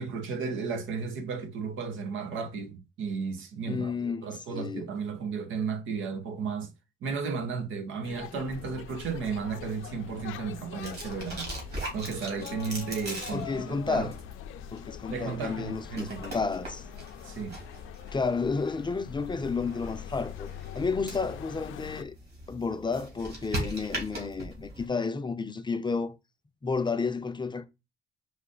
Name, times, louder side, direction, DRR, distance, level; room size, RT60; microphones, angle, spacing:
voice 1, 0.0-6.7 7.0-11.5 11.9-14.1 15.1-16.3 17.2-17.6, right 5 dB, 80° right, 0.9 m, -34 dB
voice 2, 3.7-4.9 13.3-14.2 14.7-16.9 18.1-22.1 22.5-26.2 26.6-27.6, left 4 dB, 25° left, 0.6 m, -31 dB
sound 1, 8.0-22.0, left 11 dB, 90° left, 0.5 m, -43 dB
sound 2, 8.4-24.9, right 1 dB, 55° right, 2.6 m, -42 dB
4.9 x 2.6 x 3.8 m
cardioid pair, 90°, 20 cm